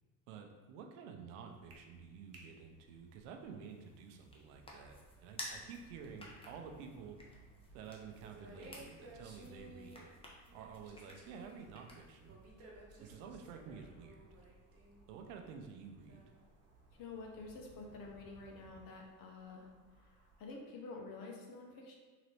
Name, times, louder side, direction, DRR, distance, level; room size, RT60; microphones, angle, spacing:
voice 1, 0.3-7.2 7.7-10.1 10.5-12.4 13.0-14.3 15.1-16.2, right 6 dB, 75° right, 4 dB, 0.7 m, -51 dB
Wind in the grass, 1.4-20.5, right 1 dB, 35° right, 1.0 m, -60 dB
sound 1, 3.6-12.3, left 1 dB, 15° left, 0.8 m, -54 dB
Dark Scary Castle Hall, 4.6-18.9, right 2 dB, 15° right, 1.3 m, -64 dB
voice 2, 17.0-19.7 20.4-22.0, left 3 dB, 55° left, 1 dB, 0.9 m, -49 dB
3.9 x 2.8 x 3.2 m, 1.4 s
supercardioid pair, 85°, 41 cm